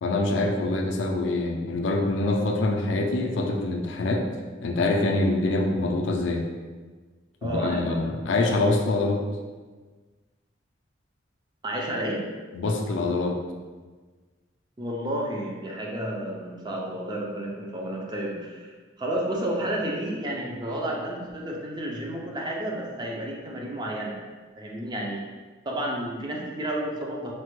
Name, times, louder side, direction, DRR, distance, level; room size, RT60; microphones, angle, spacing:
voice 1, 0.0-4.3 4.6-6.4 7.4-9.2 12.5-13.4, left 2 dB, 80° left, 2 dB, 0.4 m, -25 dB
voice 2, 7.4-8.2 11.6-12.2 14.8-18.7 19.0-24.2 24.6-25.2 25.7-27.3, right 1 dB, 25° right, -2 dB, 0.4 m, -31 dB
3.2 x 2.1 x 3.0 m, 1.4 s
head